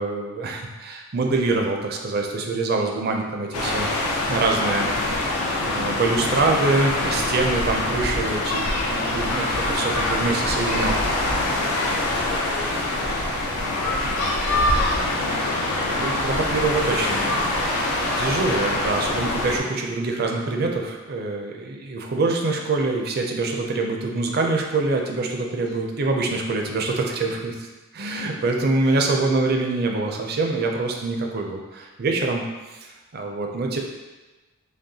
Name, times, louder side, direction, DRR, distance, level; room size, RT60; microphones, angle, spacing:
voice 1, 0.0-3.9 4.3-11.0 11.3-11.4 15.8-17.4 17.8-27.7 27.9-32.4 32.7-33.8, right 3 dB, 45° right, 2 dB, 0.4 m, -25 dB
sound 1, 3.5-19.6, left 2 dB, 90° left, 0.6 m, -24 dB
voice 2, 11.1-15.8 16.6-17.7 18.0-18.4 25.6-25.8 28.2-28.3 28.8-29.0, left 2 dB, 45° left, 0 dB, 0.5 m, -41 dB
5.2 x 2.1 x 2.7 m, 1.2 s
head